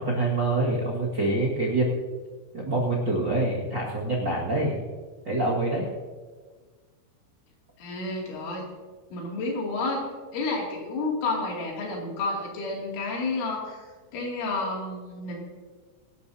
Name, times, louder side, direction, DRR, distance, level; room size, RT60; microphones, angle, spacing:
voice 1, 0.0-2.0 2.5-4.8 5.2-5.9, right 2 dB, 50° right, -6 dB, 1.3 m, -26 dB
voice 2, 7.8-8.6 9.1-10.0 10.3-13.8 14.1-15.4, left 3 dB, 90° left, -2 dB, 5.2 m, -30 dB
25.0 x 12.0 x 2.8 m, 1.5 s
omnidirectional pair, 5.4 m